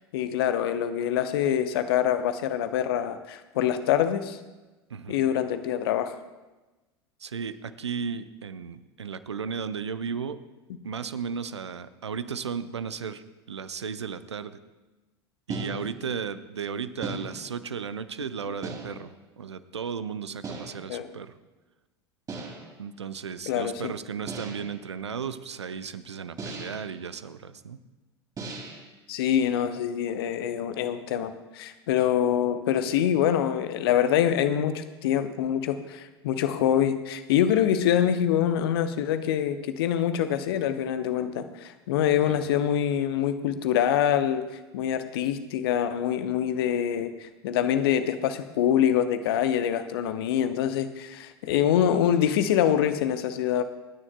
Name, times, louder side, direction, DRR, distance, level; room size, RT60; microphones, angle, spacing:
voice 1, 0.1-4.4 5.1-6.1 20.9-21.1 23.5-23.9 29.1-53.6, left 10 dB, 60° left, 10 dB, 0.8 m, -25 dB
voice 2, 7.2-10.4 10.8-14.6 15.5-21.3 22.8-27.8 42.3-42.4, right 6 dB, 80° right, 13 dB, 0.6 m, -35 dB
sound 1, 15.5-16.1 17.0-17.7 18.6-19.2 20.4-20.9 22.3-22.8 24.3-24.8 26.4-26.9 28.4-28.9, right 3 dB, 25° right, 2.6 m, -37 dB
27.0 x 9.7 x 2.2 m, 1.1 s
figure-of-eight pair, 80°, 14 cm